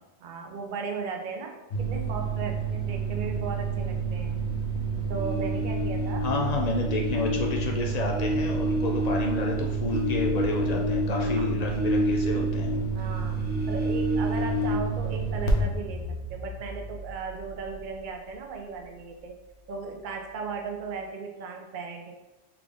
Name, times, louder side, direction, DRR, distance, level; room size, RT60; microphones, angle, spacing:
voice 1, 0.2-4.4 5.1-6.3 10.3-10.5 11.2-11.6 12.3-12.5 12.9-19.3 19.7-22.1, right 5 dB, 55° right, 3 dB, 0.6 m, -36 dB
sound 1, 1.7-18.1, right 5 dB, 85° left, 0.9 m, -30 dB
sound 2, 5.1-6.4 6.8-12.9 13.1-14.7, left 2 dB, 15° right, 0.3 m, -30 dB
voice 2, 6.2-12.8, left 3 dB, 60° left, 0 dB, 0.4 m, -30 dB
3.5 x 2.5 x 3.4 m, 1.1 s
omnidirectional pair, 1.2 m